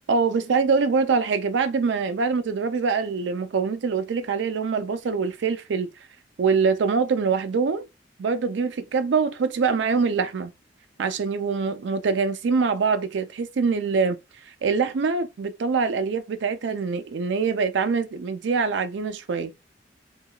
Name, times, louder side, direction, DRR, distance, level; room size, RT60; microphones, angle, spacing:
voice 1, 0.1-5.9 6.4-7.9 8.2-10.5 11.0-14.2 14.6-19.5, right 5 dB, 80° right, 0.4 m, -24 dB
2.8 x 2.3 x 2.2 m
head